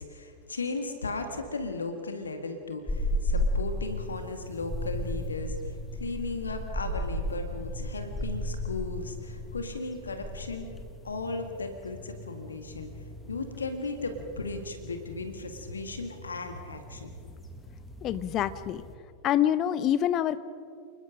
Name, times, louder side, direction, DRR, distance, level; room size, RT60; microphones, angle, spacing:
voice 1, 0.0-10.7 11.0-12.9 13.3-17.1, left 3 dB, 75° left, 6 dB, 2.0 m, -36 dB
sound 1, 2.9-19.0, left 1 dB, 10° left, 2.3 m, -35 dB
voice 2, 18.0-18.8 19.2-20.4, left 11 dB, 35° left, 14 dB, 1.0 m, -26 dB
29.5 x 20.5 x 5.2 m, 2.3 s
figure-of-eight pair, 90°, 0 cm